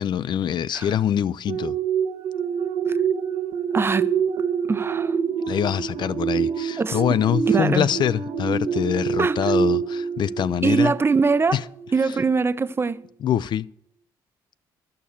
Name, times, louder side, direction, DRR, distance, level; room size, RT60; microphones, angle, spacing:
voice 1, 0.0-1.8 5.5-10.9 11.5-11.6 12.0-12.2 13.2-13.7, left 9 dB, 50° left, 0.3 m, -24 dB
sound 1, 1.5-11.3 11.8-12.0, right 6 dB, 70° right, 1.0 m, -26 dB
voice 2, 3.7-4.1 4.7-5.2 6.8-7.0 7.5-7.9 9.2-9.4 10.6-11.6 11.9-13.0, right 4 dB, 25° right, 0.5 m, -22 dB
11.0 x 6.6 x 7.1 m
supercardioid pair, 65°, 10 cm